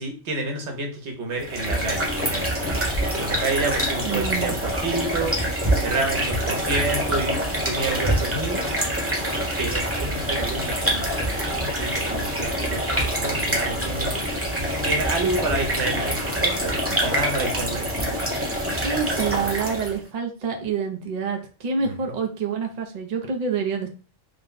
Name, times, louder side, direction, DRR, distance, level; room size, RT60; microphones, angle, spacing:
voice 1, 0.0-2.8 3.1-4.5 4.8-5.3 5.8-8.6 9.6-11.1 11.6-14.2 14.6-17.9 21.8-22.1, right 3 dB, 80° right, 2 dB, 1.2 m, -29 dB
sound 1, 1.4-20.0, equal, 15° right, 0.9 m, -25 dB
voice 2, 4.0-4.6 18.8-23.9, right 5 dB, 45° right, 3 dB, 0.6 m, -27 dB
3.4 x 2.2 x 3.9 m, 0.36 s
omnidirectional pair, 1.2 m